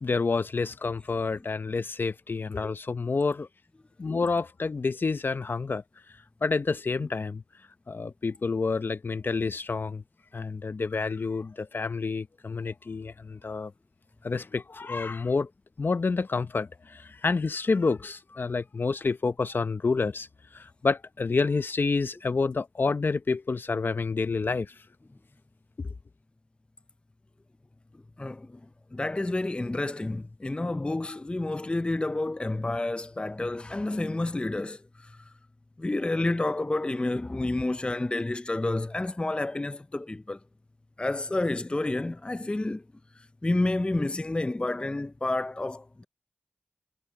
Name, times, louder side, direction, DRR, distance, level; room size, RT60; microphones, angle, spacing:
voice 1, 0.0-3.5 4.0-5.8 6.4-7.4 7.9-10.0 10.3-13.7 14.2-15.5 15.8-20.3 20.5-24.7, left 4 dB, 65° left, 0.8 m, -28 dB
voice 2, 28.2-28.6 28.9-35.1 35.8-40.4 41.0-42.8 43.4-46.0, left 2 dB, 30° left, 0.5 m, -29 dB
cardioid pair, 45°, 4 cm